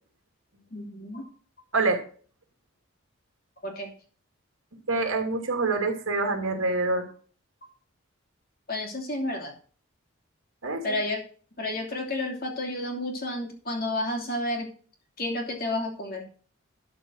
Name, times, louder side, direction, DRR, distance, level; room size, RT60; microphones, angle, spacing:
voice 1, 0.7-1.3 3.6-3.9 8.7-9.5 10.8-11.2 11.6-14.7 15.2-16.3, left 1 dB, 45° left, 1 dB, 2.9 m, -31 dB
voice 2, 4.9-7.1 10.6-11.0, right 3 dB, 80° right, 4 dB, 2.6 m, -26 dB
12.5 x 4.9 x 6.4 m, 0.41 s
head